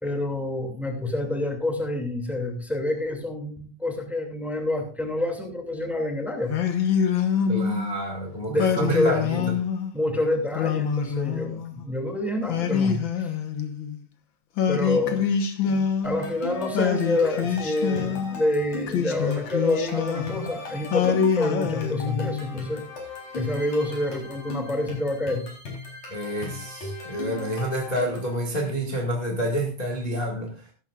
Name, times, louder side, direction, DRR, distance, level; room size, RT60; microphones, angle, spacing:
voice 1, 0.0-6.5 8.4-9.4 9.9-13.3 14.7-15.3 15.7-22.8 23.3-25.4, left 1 dB, ahead, 3 dB, 1.7 m, -28 dB
Singing, 6.5-8.0 8.6-9.9 10.5-11.8 12.5-14.0 14.6-16.3 16.7-18.4 18.9-20.5 20.9-22.5, left 7 dB, 80° left, 1.0 m, -25 dB
voice 2, 7.5-9.4 26.1-30.7, right 1 dB, 20° left, 0 dB, 1.1 m, -28 dB
sound 1, 16.0-28.3, left 2 dB, 55° left, 5.1 m, -37 dB
15.0 x 12.0 x 2.5 m, 0.38 s
omnidirectional pair, 4.0 m